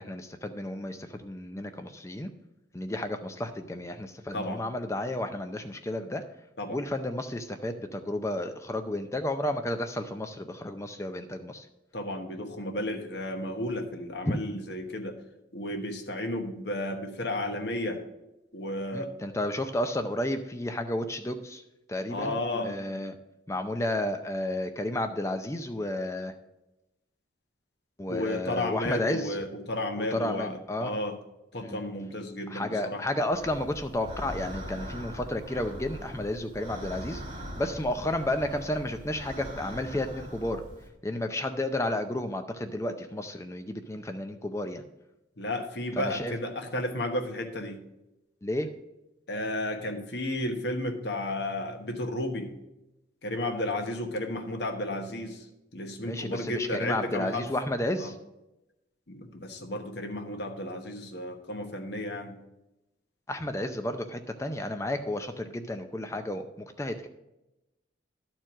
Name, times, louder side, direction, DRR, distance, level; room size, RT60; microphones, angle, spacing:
voice 1, 0.0-2.3 2.7-6.2 6.7-11.7 14.3-14.4 18.9-21.6 21.9-22.4 22.6-23.1 23.5-26.3 28.0-29.4 30.0-30.9 31.6-31.9 32.5-37.2 37.6-40.6 41.0-44.8 46.0-46.3 48.4-48.7 56.1-58.2 63.3-67.1, left 1 dB, 15° left, 7 dB, 0.5 m, -32 dB
voice 2, 11.9-15.2 15.5-18.0 18.5-19.2 22.1-22.8 28.1-31.2 31.5-33.0 45.4-47.8 49.3-52.5 53.2-55.4 55.7-57.5 58.0-58.1 59.1-62.4, left 1 dB, 60° left, 4 dB, 1.2 m, -33 dB
sound 1, 33.3-40.9, equal, 25° right, 2.6 m, -41 dB
11.5 x 4.5 x 6.1 m, 0.93 s
head